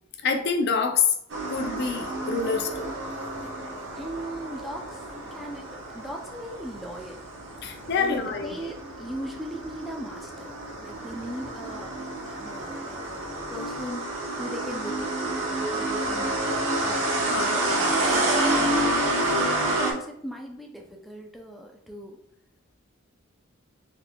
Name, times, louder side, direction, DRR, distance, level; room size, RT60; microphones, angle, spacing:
voice 1, 0.2-1.1 1.5-3.0 7.6-8.5 17.3-18.1, left 5 dB, 55° left, 5 dB, 0.5 m, -27 dB
sound 1, 1.3-19.9, right 1 dB, 75° right, 0.8 m, -29 dB
voice 2, 4.0-7.2 8.0-11.9 12.4-16.3 16.8-17.5 18.0-19.0 19.3-22.2, equal, ahead, 0 dB, 0.4 m, -39 dB
3.8 x 3.2 x 2.2 m, 0.72 s
head